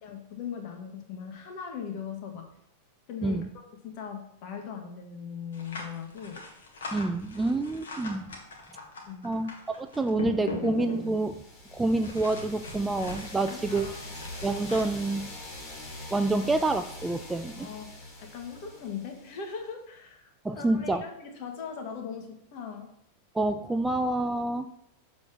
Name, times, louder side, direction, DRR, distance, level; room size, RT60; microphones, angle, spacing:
voice 1, 0.0-2.5 3.1-6.4 9.1-9.4 13.4-14.0 17.6-22.9, left 6 dB, 45° left, 4 dB, 1.7 m, -40 dB
sound 1, 5.5-11.4 12.0-14.8, left 3 dB, 65° left, 1.8 m, -40 dB
voice 2, 6.9-8.3 9.2-11.4 11.7-13.9 14.4-15.3 16.1-17.7 20.4-21.0 23.3-24.7, right 2 dB, 10° right, 9 dB, 0.4 m, -28 dB
sound 2, 10.9-19.6, left 2 dB, 25° left, 2.0 m, -44 dB
7.0 x 4.4 x 6.7 m, 0.77 s
figure-of-eight pair, 90°, 0 cm